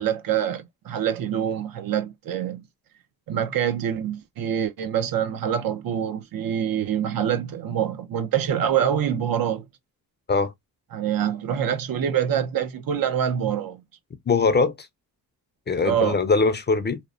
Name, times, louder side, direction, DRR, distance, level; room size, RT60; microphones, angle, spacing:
voice 1, 0.0-2.6 3.3-9.7 10.9-13.8 15.8-16.2, right 9 dB, 70° right, 0.6 m, -25 dB
voice 2, 14.3-14.7 15.7-17.0, left 4 dB, 30° left, 0.5 m, -21 dB
2.9 x 2.0 x 2.4 m
cardioid pair, 110°, 35 cm